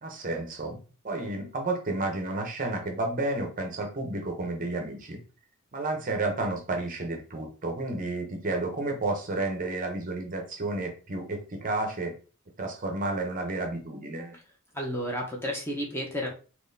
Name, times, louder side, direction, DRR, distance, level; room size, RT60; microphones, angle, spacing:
voice 1, 0.0-5.2 5.7-12.1 12.6-14.4, right 2 dB, 35° right, 3 dB, 0.7 m, -31 dB
voice 2, 14.7-16.3, equal, 10° left, -1 dB, 0.8 m, -31 dB
3.8 x 2.9 x 2.6 m, 0.36 s
head